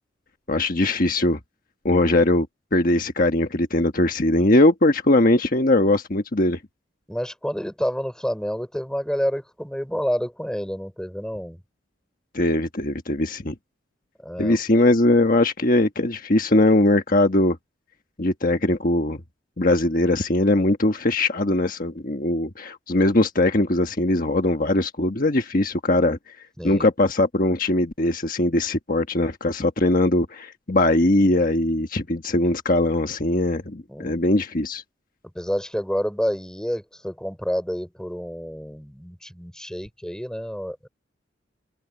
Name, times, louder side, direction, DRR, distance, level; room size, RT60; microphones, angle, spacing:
voice 1, 0.5-1.4 1.8-2.5 2.7-6.6 12.3-13.5 14.4-17.6 18.2-19.2 19.6-26.2 26.6-34.8, left 1 dB, 45° left, 1.4 m, -20 dB
voice 2, 7.1-11.6 14.2-14.6 26.6-26.9 33.9-34.2 35.3-40.9, equal, 5° left, 5.1 m, -29 dB
open air
head